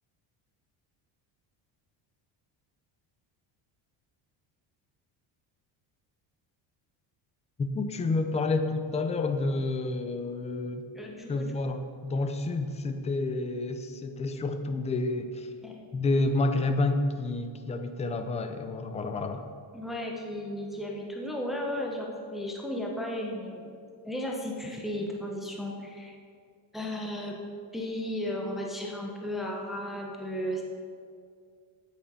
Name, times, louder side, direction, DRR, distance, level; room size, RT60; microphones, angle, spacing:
voice 1, 7.6-10.8 11.3-15.5 15.9-19.5, left 2 dB, 15° left, 7 dB, 0.4 m, -29 dB
voice 2, 10.9-11.5 15.6-15.9 19.7-23.7 24.0-26.2 26.7-27.4 27.7-30.6, left 1 dB, ahead, 0 dB, 0.8 m, -34 dB
9.1 x 8.6 x 5.5 m, 2.2 s
cardioid pair, 165°, 48 cm